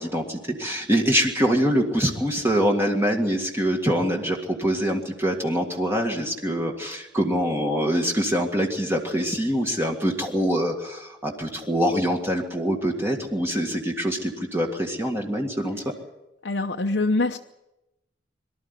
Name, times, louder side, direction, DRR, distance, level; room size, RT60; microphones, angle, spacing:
voice 1, 0.0-15.9, equal, 15° right, 1 dB, 1.9 m, -24 dB
voice 2, 16.4-17.4, left 2 dB, 65° left, 3 dB, 0.9 m, -24 dB
23.5 x 13.0 x 9.8 m, 0.95 s
head